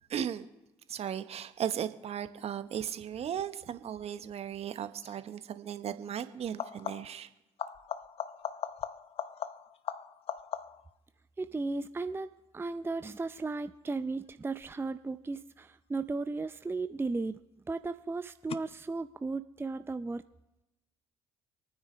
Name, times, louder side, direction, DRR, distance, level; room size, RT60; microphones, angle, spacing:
voice 1, 0.1-0.5 0.9-7.3, right 9 dB, 50° right, 11 dB, 1.1 m, -36 dB
sound 1, 5.0-5.3 6.4-7.3 7.6-11.0 16.4-17.0 18.5-18.6, left 8 dB, 45° left, 0.7 m, -40 dB
voice 2, 11.4-12.3 12.5-20.2, right 3 dB, 15° right, 11 dB, 0.5 m, -35 dB
28.0 x 9.6 x 3.1 m, 0.96 s
hypercardioid pair, 50°, 13 cm